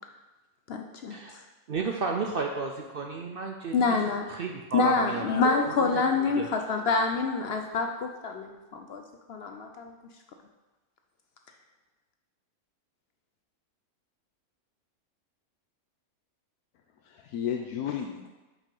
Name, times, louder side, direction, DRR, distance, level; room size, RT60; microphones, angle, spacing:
voice 1, 0.7-1.2 3.7-4.3 4.7-9.0 9.3-9.9, left 4 dB, 65° left, 4 dB, 0.6 m, -27 dB
voice 2, 1.7-3.7 4.3-5.3 5.8-6.5, right 4 dB, 65° right, 2 dB, 0.5 m, -32 dB
voice 3, 5.2-5.7 17.1-18.3, left 8 dB, 85° left, 3 dB, 1.1 m, -33 dB
5.5 x 5.1 x 5.4 m, 1.1 s
omnidirectional pair, 1.6 m